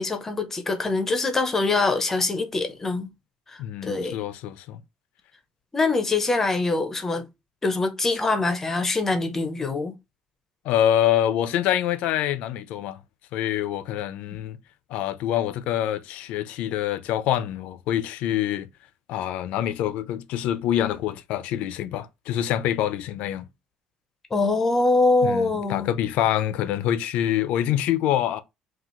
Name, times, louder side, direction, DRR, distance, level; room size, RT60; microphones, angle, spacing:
voice 1, 0.0-3.1 3.5-4.3 5.7-7.2 7.6-9.9 24.3-25.9, left 3 dB, 15° left, 0.8 m, -24 dB
voice 2, 3.6-4.8 10.6-13.0 13.3-14.6 14.9-18.7 19.1-23.5 25.2-28.4, left 11 dB, 75° left, 0.6 m, -25 dB
6.0 x 2.4 x 3.1 m
cardioid pair, 170°, 2 cm